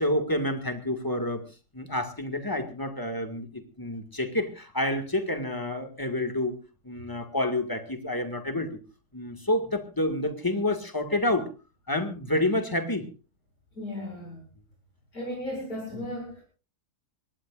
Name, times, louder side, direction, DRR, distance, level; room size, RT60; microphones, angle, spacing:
voice 1, 0.0-1.4 1.7-6.5 6.8-8.8 9.1-11.5 11.9-13.0 15.9-16.1, left 1 dB, 15° left, 6 dB, 1.9 m, -28 dB
voice 2, 13.8-14.4 15.1-16.4, left 1 dB, 65° left, 0 dB, 7.6 m, -35 dB
23.5 x 18.5 x 2.5 m, 0.33 s
omnidirectional pair, 1.7 m